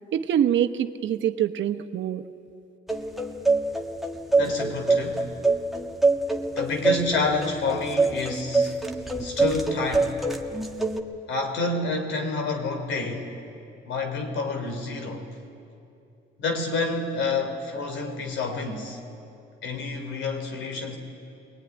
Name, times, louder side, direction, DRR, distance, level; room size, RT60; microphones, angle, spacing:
voice 1, 0.1-2.2, right 10 dB, 70° right, 7 dB, 1.1 m, -24 dB
sound 1, 2.9-11.0, right 3 dB, ahead, 1.6 m, -25 dB
voice 2, 4.4-5.3 6.5-8.7 9.2-10.1 11.3-13.3 13.9-15.3 16.4-19.0 19.6-21.0, left 3 dB, 75° left, 5 dB, 3.7 m, -28 dB
23.0 x 19.5 x 9.9 m, 2.6 s
cardioid pair, 90°, 20 cm